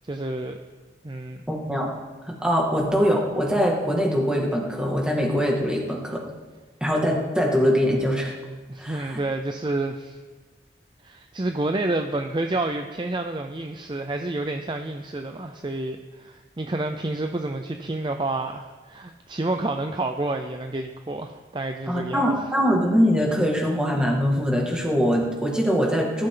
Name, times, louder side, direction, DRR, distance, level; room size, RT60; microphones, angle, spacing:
voice 1, 0.1-0.6 1.0-1.4 8.7-10.2 11.0-22.3, right 2 dB, 25° right, 5 dB, 0.6 m, -29 dB
voice 2, 1.5-1.9 2.4-6.2 6.8-8.3 8.8-9.2 21.9-26.3, equal, 5° right, -2 dB, 2.1 m, -22 dB
20.5 x 12.5 x 3.9 m, 1.3 s
head